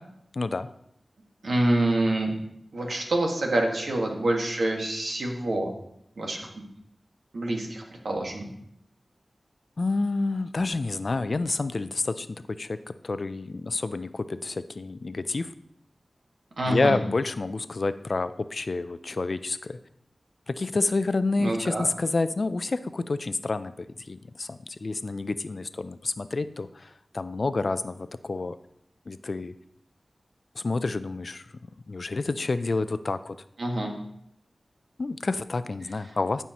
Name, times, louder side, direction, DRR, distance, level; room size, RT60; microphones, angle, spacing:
voice 1, 0.3-0.7 9.8-12.8 13.0-15.5 16.7-19.8 20.5-28.5 29.1-29.5 30.6-31.4 31.9-33.4 35.0-36.4, left 3 dB, 60° left, 13 dB, 0.4 m, -29 dB
voice 2, 1.4-2.3 2.7-5.7 6.2-6.5 7.3-8.5 16.6-17.0 21.4-21.9 33.6-33.9, right 1 dB, 80° right, 0 dB, 1.7 m, -26 dB
14.0 x 5.6 x 3.0 m, 0.75 s
wide cardioid pair, 60°, 0 cm